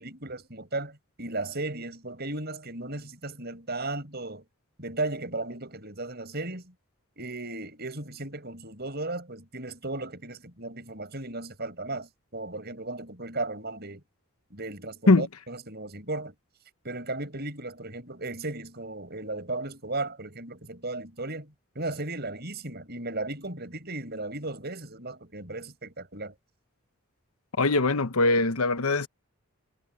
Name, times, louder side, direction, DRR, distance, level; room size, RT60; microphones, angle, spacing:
voice 1, 0.0-4.4 4.8-6.7 7.2-14.0 14.5-16.3 16.8-26.3, right 2 dB, 45° right, 7.6 m, -35 dB
voice 2, 27.6-29.1, left 3 dB, 80° left, 1.0 m, -21 dB
head